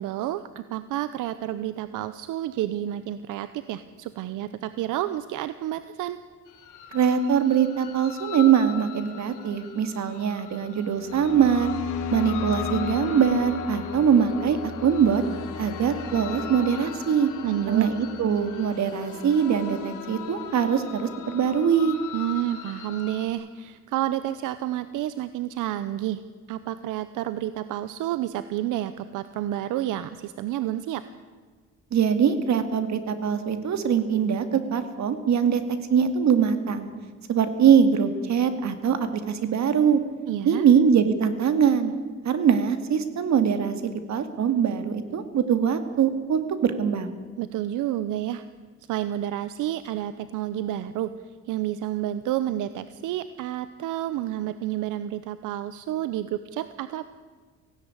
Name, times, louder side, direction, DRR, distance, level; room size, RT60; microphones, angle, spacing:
voice 1, 0.0-6.2 17.4-17.9 22.1-26.2 26.5-31.0 40.3-40.7 47.4-48.5 48.9-51.1 51.5-57.0, right 13 dB, 90° right, 13 dB, 0.8 m, -30 dB
sound 1, 6.5-23.3, left 6 dB, 85° left, 2.9 m, -36 dB
voice 2, 6.9-11.7 12.1-15.2 15.6-17.3 17.7-22.0 31.9-36.9 37.3-40.0 40.5-41.9 42.2-47.2, right 7 dB, 65° right, 10 dB, 2.3 m, -22 dB
17.5 x 16.5 x 9.8 m, 1.5 s
cardioid pair, 90°, 30 cm